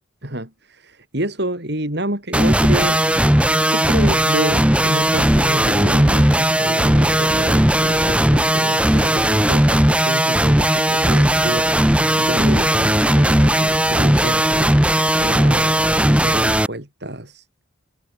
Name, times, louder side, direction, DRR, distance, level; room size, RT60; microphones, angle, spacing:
voice 1, 0.2-3.0 3.4-17.6, right 1 dB, 55° right, 5.3 m, -29 dB
sound 1, 2.3-16.7, right 1 dB, 5° right, 1.7 m, -17 dB
head